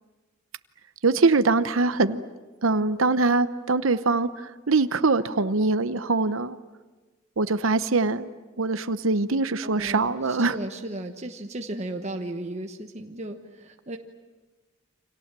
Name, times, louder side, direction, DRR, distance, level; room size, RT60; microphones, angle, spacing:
voice 1, 1.0-2.2 2.6-6.6 7.4-8.3 8.6-10.5, right 3 dB, 80° right, 12 dB, 0.9 m, -23 dB
voice 2, 9.6-14.0, right 1 dB, 35° right, 4 dB, 1.2 m, -35 dB
29.5 x 26.0 x 7.5 m, 1.3 s
head